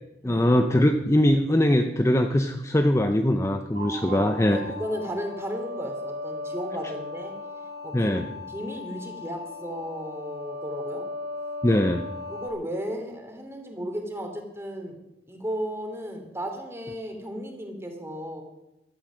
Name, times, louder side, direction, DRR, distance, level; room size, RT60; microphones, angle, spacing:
voice 1, 0.2-4.6 7.9-8.2 11.6-12.0, left 1 dB, 15° left, 6 dB, 0.7 m, -21 dB
sound 1, 3.7-12.5, left 2 dB, 60° right, 3.2 m, -37 dB
voice 2, 4.5-7.3 7.8-8.2 8.5-11.1 12.3-15.0 15.3-18.4, equal, 15° right, 4 dB, 2.8 m, -34 dB
15.0 x 12.5 x 6.2 m, 0.92 s
head